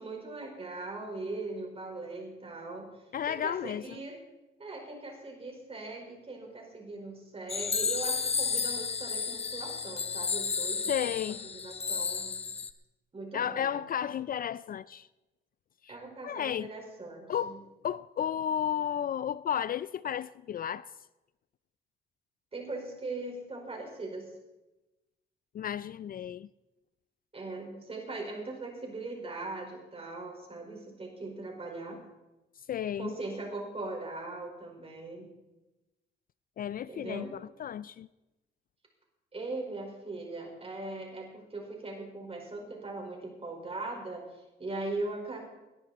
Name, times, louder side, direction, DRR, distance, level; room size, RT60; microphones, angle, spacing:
voice 1, 0.0-2.9 3.3-4.2 4.6-12.4 13.1-13.8 15.9-17.6 22.5-24.3 27.3-32.0 33.0-35.3 36.9-37.4 39.3-45.5, right 2 dB, 30° right, 5.0 m, -40 dB
voice 2, 3.1-4.0 10.9-11.4 13.3-15.1 15.8-16.0 16.2-16.7 17.3-20.9 25.5-26.5 32.7-33.1 36.6-38.1, left 9 dB, 45° left, 0.4 m, -33 dB
sound 1, 7.5-12.7, left 5 dB, 30° left, 0.8 m, -32 dB
19.0 x 10.5 x 4.3 m
cardioid pair, 90°, 20 cm